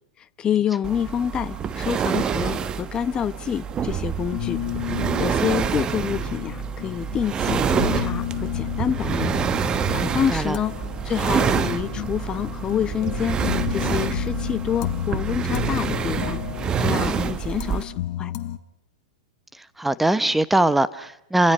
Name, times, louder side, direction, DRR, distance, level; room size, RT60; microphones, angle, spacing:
voice 1, 0.2-4.6 5.2-9.3 9.9-16.4 16.8-18.3, left 9 dB, 25° left, 1.1 m, -27 dB
sound 1, 0.8-17.8, right 7 dB, 25° right, 1.3 m, -27 dB
sound 2, 4.3-18.6, left 14 dB, 50° left, 1.5 m, -32 dB
voice 2, 10.1-10.6 19.8-21.5, right 1 dB, 5° right, 1.0 m, -21 dB
30.0 x 27.0 x 5.6 m
hypercardioid pair, 110°, 3 cm